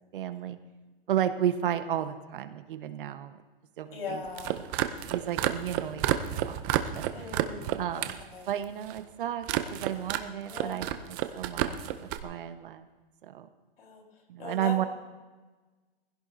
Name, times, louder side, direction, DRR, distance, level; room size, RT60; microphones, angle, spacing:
voice 1, 0.1-0.6 1.1-3.4 3.8-4.2 5.1-7.3 7.8-8.1 8.5-12.9 13.2-13.5 14.3-14.8, right 10 dB, 60° right, 9 dB, 1.2 m, -33 dB
voice 2, 3.9-4.6 7.1-8.0 8.3-8.5 10.5-10.8 13.8-14.0 14.4-14.9, left 3 dB, 75° left, 1 dB, 4.6 m, -39 dB
sound 1, 4.2-8.2 8.5-9.0 9.4-10.2 10.5-12.2, right 12 dB, 20° right, 0.5 m, -30 dB
22.0 x 16.0 x 2.7 m, 1.3 s
hypercardioid pair, 155°, 30 cm